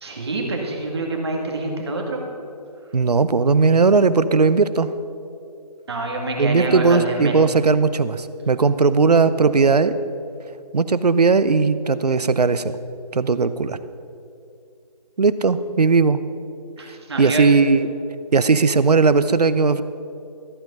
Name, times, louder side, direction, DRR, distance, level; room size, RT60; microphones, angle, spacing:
voice 1, 0.0-2.2 5.9-7.3 16.8-17.5, right 2 dB, 40° right, 1 dB, 1.9 m, -26 dB
voice 2, 2.9-4.9 6.4-9.9 10.7-12.6 13.1-13.8 15.2-16.2 17.2-17.9 18.3-19.8, right 4 dB, 70° right, 14 dB, 0.7 m, -17 dB
14.0 x 8.8 x 5.4 m, 2.6 s
figure-of-eight pair, 165°, 21 cm